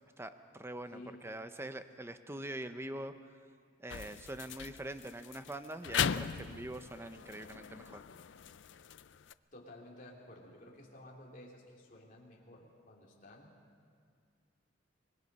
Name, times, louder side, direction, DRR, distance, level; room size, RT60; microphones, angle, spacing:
voice 1, 0.2-3.3 3.8-8.0, right 1 dB, 15° right, 9 dB, 0.7 m, -44 dB
voice 2, 0.9-1.2 9.5-13.5, left 1 dB, 45° left, -2 dB, 3.1 m, -53 dB
sound 1, 3.9-9.3, left 8 dB, 65° left, 0.5 m, -39 dB
25.0 x 20.5 x 5.4 m, 2.2 s
head